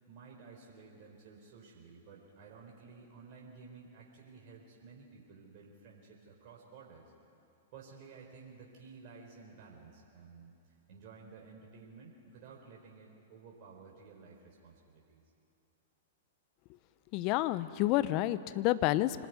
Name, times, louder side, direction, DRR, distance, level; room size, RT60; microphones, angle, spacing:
voice 1, 0.1-7.0 7.7-15.2, right 5 dB, 50° right, -1 dB, 4.2 m, -54 dB
voice 2, 17.1-19.2, left 16 dB, 45° left, 15 dB, 0.9 m, -29 dB
25.5 x 19.5 x 9.4 m, 2.7 s
hypercardioid pair, 110°, 0 cm